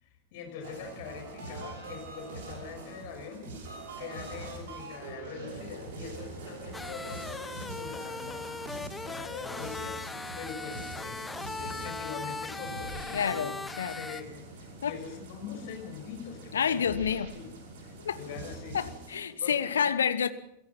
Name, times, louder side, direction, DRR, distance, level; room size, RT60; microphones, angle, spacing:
voice 1, 0.0-3.5 4.0-11.2 11.5-17.4 17.8-18.8 19.4-19.9, left 6 dB, 50° left, 5 dB, 5.7 m, -43 dB
sound 1, 0.6-19.2, right 2 dB, 55° right, 5.6 m, -44 dB
sound 2, 6.7-14.2, left 3 dB, 10° left, 1.0 m, -39 dB
voice 2, 13.1-14.0 14.8-14.9 16.5-17.3 18.0-18.2 18.7-20.3, left 7 dB, 65° left, 15 dB, 1.1 m, -28 dB
28.5 x 17.0 x 5.7 m, 0.78 s
figure-of-eight pair, 90°, 0 cm